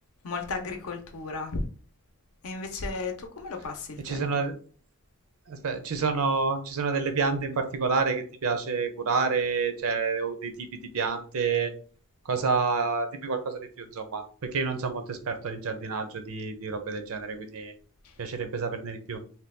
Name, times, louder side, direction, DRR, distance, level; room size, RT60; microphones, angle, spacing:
voice 1, 0.2-1.6 2.4-4.4 18.0-18.1, left 3 dB, 70° left, 0.6 m, -35 dB
voice 2, 4.0-4.5 5.5-10.7 10.9-11.7 12.3-17.7 18.2-19.2, right 4 dB, 70° right, 0.6 m, -29 dB
2.8 x 2.2 x 3.4 m
head